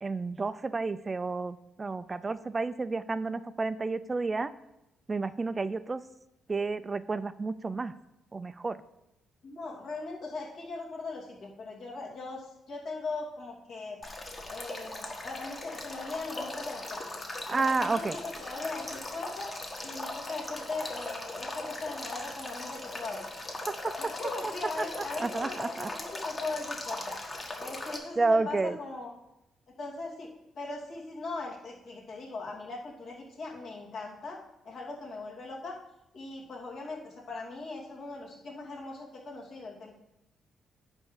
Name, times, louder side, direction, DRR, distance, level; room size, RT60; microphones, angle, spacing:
voice 1, 0.0-4.5 5.1-6.0 6.5-7.9 8.3-8.8 17.5-18.2 23.7-23.9 25.2-25.9 28.2-28.8, right 3 dB, 25° right, 13 dB, 0.4 m, -30 dB
voice 2, 9.4-14.0 14.5-17.0 17.6-19.5 19.8-23.3 24.0-27.1 27.4-29.1 29.7-34.4 34.6-35.8 36.1-40.0, left 3 dB, 60° left, -2 dB, 2.7 m, -39 dB
Male speech man speaking / Stream / Trickle dribble, 14.0-28.0, left 2 dB, 30° left, 1.6 m, -39 dB
10.5 x 3.6 x 7.2 m, 0.89 s
cardioid pair, 90°, 0 cm